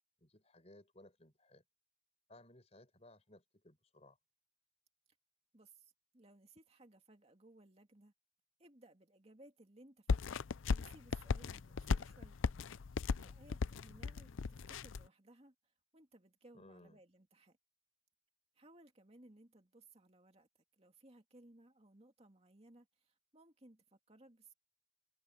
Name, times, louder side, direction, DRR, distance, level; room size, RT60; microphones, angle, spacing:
voice 1, 0.2-1.6 2.3-4.2 16.5-17.0, left 1 dB, 35° left, 5.3 m, -61 dB
voice 2, 5.5-8.1 8.6-10.5 10.7-12.4 13.2-17.6 18.5-24.5, right 2 dB, 30° right, 2.4 m, -62 dB
sound 1, 10.1-15.1, left 5 dB, 80° left, 0.5 m, -36 dB
head